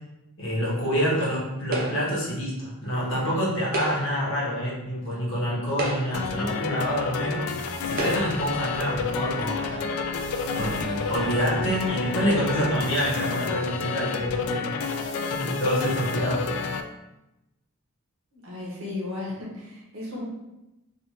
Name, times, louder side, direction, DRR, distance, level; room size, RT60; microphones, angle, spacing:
voice 1, 0.4-7.4 7.8-9.9 10.5-14.7 15.3-16.4, equal, 60° left, -6 dB, 1.0 m, -27 dB
sound 1, 1.7-2.2 3.6-4.3 5.1-5.2 5.7-6.4 7.2-7.3 7.9-8.5, right 1 dB, 40° right, 0.6 m, -31 dB
sound 2, 6.1-16.8, left 5 dB, 80° left, 0.3 m, -30 dB
sound 3, 7.7-12.7, left 1 dB, 20° left, 0.5 m, -42 dB
voice 2, 18.3-20.2, left 2 dB, 65° right, -4 dB, 1.0 m, -35 dB
3.5 x 2.3 x 2.9 m, 0.95 s
head